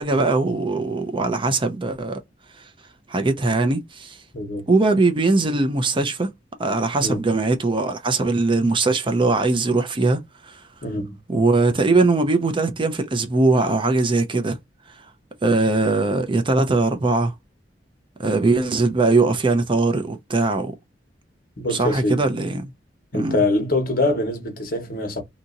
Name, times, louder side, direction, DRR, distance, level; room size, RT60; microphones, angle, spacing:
voice 1, 0.0-2.2 3.1-4.2 4.7-6.3 6.6-10.6 11.3-14.6 15.4-17.3 18.2-20.7 21.7-22.7 23.1-23.4, right 3 dB, 30° right, 0.5 m, -20 dB
voice 2, 4.3-4.7 7.0-7.3 10.8-11.2 21.6-22.3 23.1-25.2, left 2 dB, 55° left, 1.1 m, -24 dB
2.8 x 2.7 x 2.4 m
head